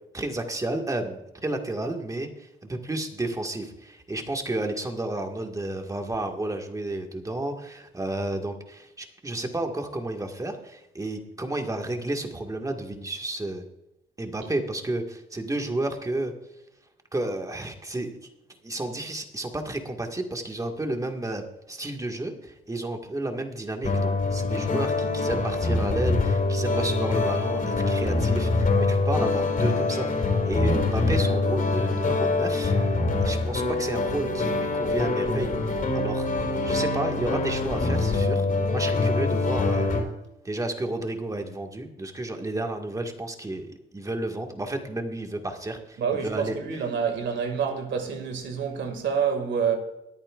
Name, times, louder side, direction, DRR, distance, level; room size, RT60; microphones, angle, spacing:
voice 1, 0.1-13.6 14.2-16.3 17.1-18.2 18.6-32.9 33.2-36.3 36.6-38.5 38.7-40.0 40.4-46.5, right 2 dB, 15° right, 1.8 m, -32 dB
sound 1, 23.8-40.0, left 3 dB, 45° left, 4.1 m, -24 dB
voice 2, 46.0-49.8, right 6 dB, 70° right, 2.2 m, -27 dB
22.0 x 8.8 x 2.5 m
cardioid pair, 90°, 20 cm